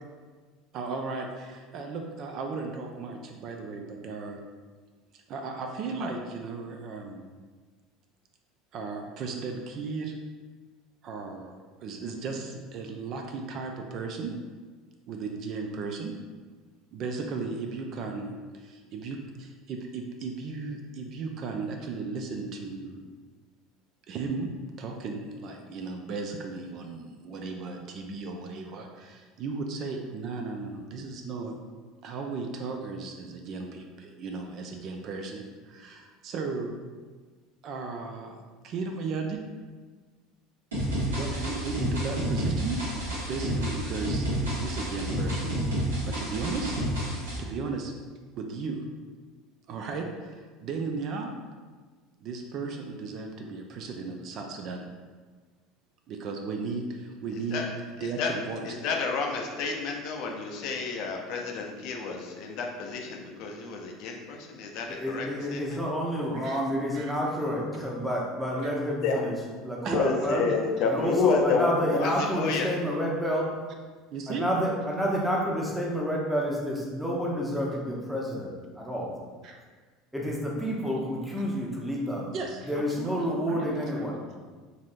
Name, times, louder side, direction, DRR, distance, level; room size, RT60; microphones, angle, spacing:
voice 1, 0.7-4.4 5.1-7.3 8.7-10.2 11.0-11.5 11.8-14.3 15.1-16.1 16.9-23.0 24.1-24.5 24.8-31.6 32.0-36.8 37.6-38.4 38.6-39.4 41.0-42.8 43.2-44.3 44.5-45.5 46.1-46.8 47.4-47.9 48.4-48.8 49.7-51.3 52.2-54.8 56.1-57.6 58.0-58.7 66.3-66.6 66.9-67.1 69.8-70.0 74.1-74.4 79.4-79.6 82.3-84.1, right 4 dB, 45° right, 3 dB, 0.3 m, -35 dB
sound 1, 40.7-47.4, equal, 70° right, 1.0 m, -30 dB
voice 2, 58.7-65.8 69.0-69.2 69.9-72.7, left 4 dB, 50° left, 1 dB, 0.4 m, -29 dB
voice 3, 64.9-69.3 69.6-70.4 70.8-73.5 74.3-78.5 78.8-79.1 80.1-82.3 82.7-84.2, equal, 5° right, -3 dB, 0.8 m, -29 dB
4.1 x 2.6 x 2.5 m, 1.4 s
figure-of-eight pair, 70°, 0 cm